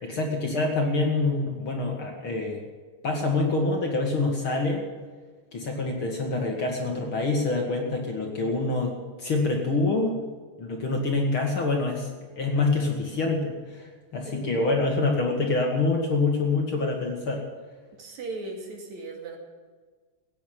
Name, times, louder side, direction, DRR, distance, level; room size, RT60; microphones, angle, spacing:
voice 1, 0.0-2.6 3.0-4.9 5.5-10.2 10.6-12.1 12.4-17.4, left 3 dB, 45° left, 1 dB, 2.4 m, -26 dB
voice 2, 14.3-14.6 18.0-19.4, right 3 dB, 60° right, 2 dB, 3.6 m, -38 dB
15.5 x 9.6 x 8.8 m, 1.4 s
omnidirectional pair, 3.8 m